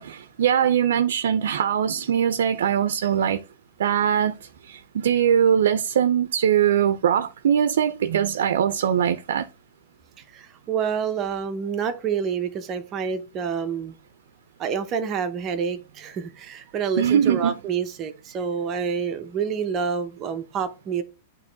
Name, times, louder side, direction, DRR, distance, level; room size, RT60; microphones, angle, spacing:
voice 1, 0.0-3.4 3.8-9.5 17.0-17.5, right 9 dB, 85° right, 0.5 m, -21 dB
voice 2, 10.3-14.0 14.6-21.0, right 6 dB, 25° right, 0.8 m, -28 dB
9.0 x 3.0 x 3.9 m
supercardioid pair, 155°, 0 cm